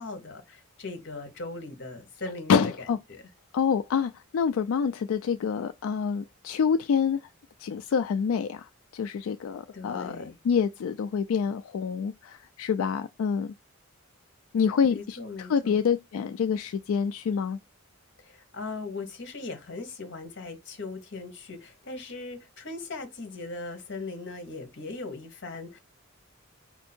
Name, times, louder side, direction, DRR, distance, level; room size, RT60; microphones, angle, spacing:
voice 1, 0.0-2.7 3.1-3.2 9.7-10.4 14.9-15.8 18.2-25.8, left 3 dB, 55° left, 1.1 m, -39 dB
voice 2, 2.5-3.0 3.5-7.2 7.6-13.5 14.5-17.6, left 6 dB, 80° left, 0.3 m, -27 dB
4.4 x 2.7 x 4.3 m
head